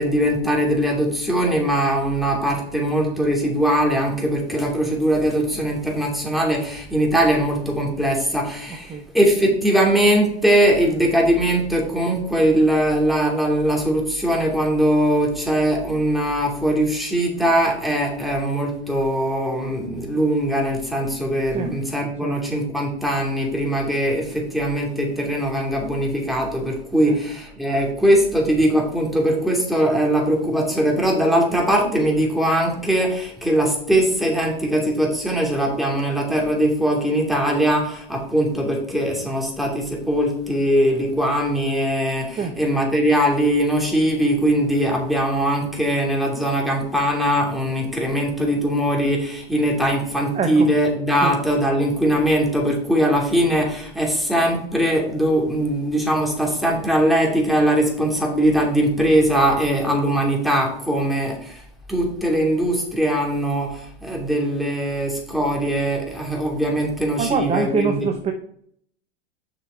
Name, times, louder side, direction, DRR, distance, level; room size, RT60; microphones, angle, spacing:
voice 1, 0.0-61.6 61.9-68.1, right 1 dB, ahead, -1 dB, 2.8 m, -21 dB
voice 2, 50.3-50.7 51.2-51.3 67.2-68.3, right 5 dB, 20° right, 6 dB, 0.8 m, -24 dB
6.8 x 6.0 x 4.5 m, 0.64 s
hypercardioid pair, 95°, 33 cm